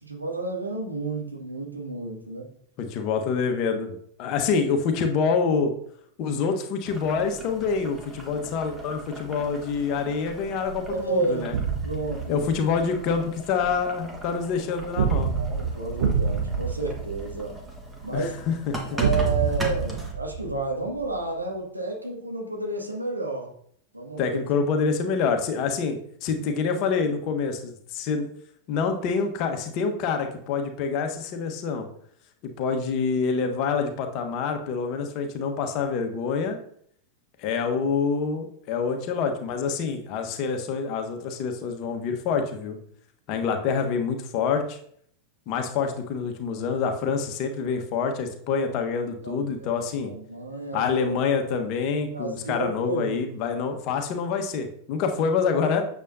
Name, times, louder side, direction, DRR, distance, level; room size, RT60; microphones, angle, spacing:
voice 1, 0.0-2.5 6.2-6.3 10.9-11.5 11.8-12.4 15.4-17.6 18.0-18.3 18.9-23.5 23.9-24.4 26.4-26.5 49.2-50.9 52.1-53.3, right 3 dB, 85° right, -1 dB, 2.1 m, -31 dB
voice 2, 2.8-5.7 6.2-11.5 12.3-15.3 18.1-18.8 24.2-28.3 28.7-31.9 32.6-36.6 37.4-42.8 43.3-44.8 45.5-50.1 50.7-55.9, left 5 dB, 40° left, 5 dB, 1.3 m, -26 dB
Boiling, 6.9-20.1, right 1 dB, 10° right, 1.7 m, -40 dB
sound 1, 11.5-12.9 15.0-17.9 19.0-21.2, right 6 dB, 60° right, 1.0 m, -27 dB
8.9 x 7.2 x 2.8 m, 0.64 s
figure-of-eight pair, 90°, 0 cm